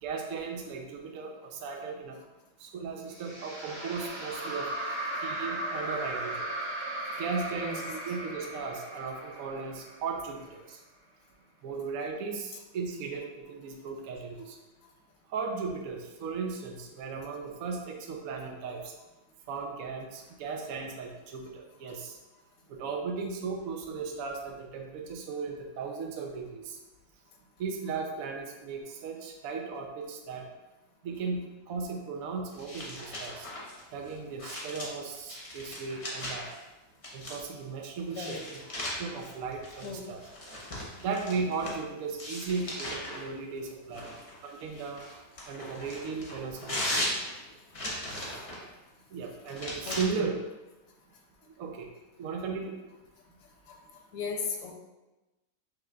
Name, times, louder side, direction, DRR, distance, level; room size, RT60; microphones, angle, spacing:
voice 1, 0.0-2.2 2.6-4.7 5.2-6.5 7.2-10.8 11.6-14.6 15.3-18.9 19.5-22.2 22.7-26.8 27.6-30.5 31.0-33.5 33.9-36.5 37.1-38.6 39.0-40.2 41.0-44.1 44.4-45.0 45.5-47.0 49.1-50.3 51.4-51.9 52.2-52.7, right 5 dB, 70° right, 1 dB, 0.8 m, -36 dB
sound 1, 3.1-10.4, right 1 dB, 35° right, 1.0 m, -37 dB
sound 2, 32.5-36.6 37.0-37.6 38.1-41.8 42.2-43.2 43.9-48.6 49.4-50.0, left 1 dB, 35° left, 0.5 m, -38 dB
voice 2, 49.8-50.3 53.7-53.8 54.1-54.7, left 5 dB, 90° left, 2 dB, 1.3 m, -37 dB
5.7 x 3.2 x 2.3 m, 1.1 s
omnidirectional pair, 1.9 m